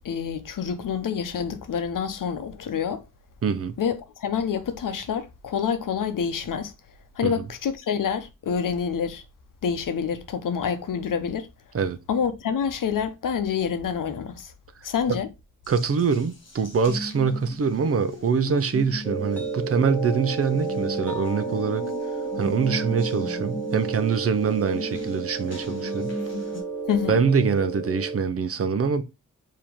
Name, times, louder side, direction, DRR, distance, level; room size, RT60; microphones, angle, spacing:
voice 1, 0.0-3.0 3.8-6.7 7.2-9.2 9.6-11.5 12.1-14.5 14.8-15.3 26.9-27.2, left 7 dB, 85° left, 0.8 m, -27 dB
voice 2, 3.4-3.7 7.2-7.3 11.7-12.0 15.7-21.9 22.4-26.2 27.1-29.0, right 5 dB, 45° right, 0.6 m, -24 dB
Water tap faucet, 15.6-26.6, left 1 dB, 40° left, 1.7 m, -38 dB
sound 1, 19.0-28.2, right 4 dB, 5° left, 0.9 m, -31 dB
4.9 x 2.9 x 3.5 m
wide cardioid pair, 160°, 31 cm